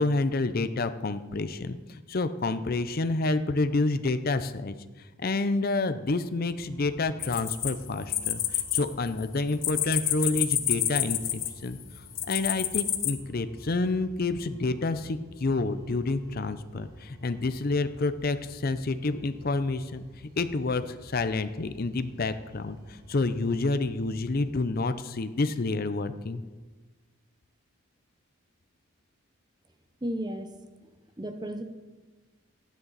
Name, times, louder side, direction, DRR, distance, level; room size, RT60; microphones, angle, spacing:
voice 1, 0.0-20.1 20.4-26.4, left 3 dB, 40° left, 11 dB, 0.5 m, -29 dB
sound 1, 6.5-24.5, equal, 80° right, 4.7 m, -51 dB
sound 2, 7.2-8.8 9.1-11.7 12.1-13.1, left 12 dB, 60° left, 1.0 m, -28 dB
voice 2, 30.0-30.5 30.8-30.9 31.2-31.6, equal, 20° right, 8 dB, 0.8 m, -33 dB
15.5 x 10.5 x 4.1 m, 1.3 s
head